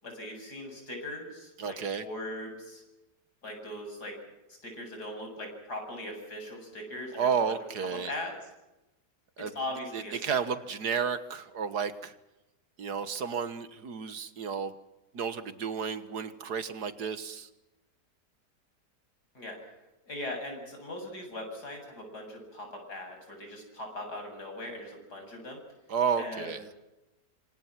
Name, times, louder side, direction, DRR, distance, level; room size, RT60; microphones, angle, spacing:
voice 1, 0.0-2.8 3.4-4.2 4.5-7.6 8.0-8.3 9.4-10.4 19.3-19.6 20.1-25.6 26.2-26.6, left 1 dB, 65° left, 3 dB, 8.2 m, -40 dB
voice 2, 1.6-2.0 7.1-8.1 9.4-9.5 9.9-12.1 12.8-14.7 15.1-17.5 25.9-26.6, right 6 dB, 70° right, 12 dB, 2.0 m, -32 dB
26.5 x 25.5 x 6.0 m, 0.96 s
omnidirectional pair, 1.8 m